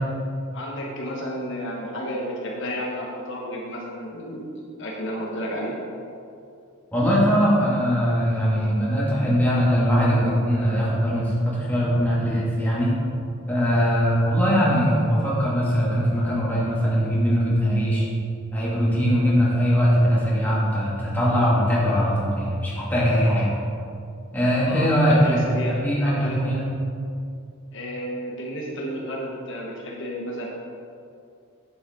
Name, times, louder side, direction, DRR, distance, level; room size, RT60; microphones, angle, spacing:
voice 1, 0.5-5.8 24.7-26.4 27.7-30.5, equal, 60° left, -2 dB, 1.3 m, -32 dB
voice 2, 6.9-12.9 13.5-18.0 18.5-23.5 24.3-25.5 25.8-26.7, equal, 10° left, -8 dB, 2.5 m, -21 dB
11.0 x 8.2 x 3.9 m, 2.5 s
head